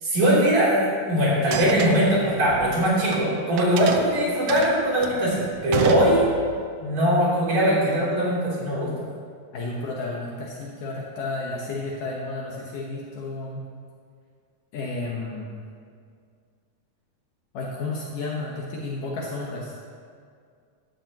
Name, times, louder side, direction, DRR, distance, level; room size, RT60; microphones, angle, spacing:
voice 1, 0.0-6.3 6.8-8.9, equal, 50° right, -7 dB, 4.5 m, -21 dB
sound 1, 1.4-3.2 3.6-6.6, right 6 dB, 90° right, 1.6 m, -31 dB
voice 2, 9.5-13.6 14.7-15.5 17.5-19.8, left 3 dB, 70° left, -3 dB, 2.6 m, -32 dB
16.0 x 12.0 x 3.0 m, 2.1 s
omnidirectional pair, 4.2 m